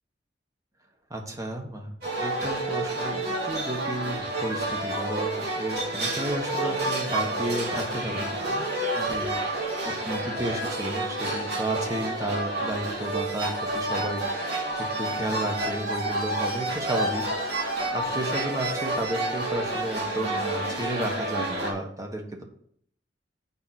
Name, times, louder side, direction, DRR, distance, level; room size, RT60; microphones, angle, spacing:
voice 1, 1.1-9.4 9.8-17.2 17.9-22.4, right 1 dB, 20° right, 2 dB, 1.3 m, -33 dB
sound 1, 2.0-21.7, right 2 dB, 60° right, 2.8 m, -29 dB
6.8 x 5.5 x 6.4 m, 0.64 s
head